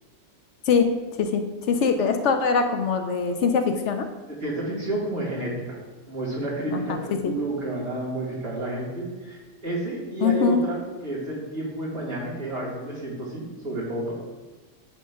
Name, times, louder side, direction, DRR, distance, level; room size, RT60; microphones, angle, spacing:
voice 1, 1.7-4.1 6.7-7.0 7.2-7.3 10.2-10.6, left 5 dB, 70° left, 6 dB, 0.9 m, -22 dB
voice 2, 4.4-5.8 6.1-14.1, right 2 dB, 65° right, -5 dB, 2.7 m, -30 dB
9.2 x 6.4 x 2.3 m, 1.2 s
omnidirectional pair, 1.3 m